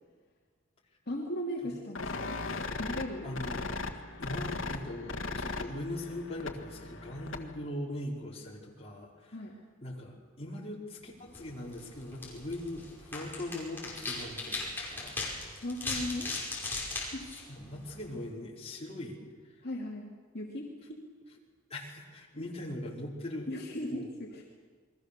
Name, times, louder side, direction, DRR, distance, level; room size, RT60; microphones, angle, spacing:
voice 1, 1.1-3.3 9.3-9.6 15.6-16.3 17.1-17.2 19.6-21.0 22.3-22.4 23.5-24.4, left 1 dB, 55° left, -3 dB, 2.9 m, -38 dB
sound 1, 1.9-7.7, left 3 dB, 90° left, 1.7 m, -38 dB
voice 2, 3.2-3.6 3.9-9.4 9.8-15.2 17.5-19.2 19.6-19.7 21.7-23.5 23.9-24.1, left 1 dB, 30° left, -3 dB, 4.6 m, -40 dB
sound 2, 11.2-18.2, left 3 dB, 10° left, 5.8 m, -39 dB
28.5 x 22.5 x 6.9 m, 1.5 s
head